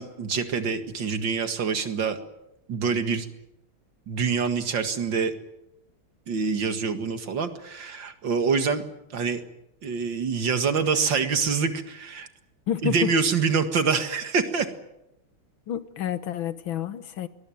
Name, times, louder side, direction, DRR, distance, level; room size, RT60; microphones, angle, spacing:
voice 1, 0.0-2.2 2.7-3.3 4.1-5.3 6.3-8.8 9.1-9.4 9.8-12.3 12.8-14.7, right 5 dB, 65° right, 2.5 m, -25 dB
voice 2, 12.7-13.1 15.7-17.3, left 10 dB, 80° left, 2.0 m, -29 dB
22.5 x 20.0 x 9.3 m
omnidirectional pair, 2.2 m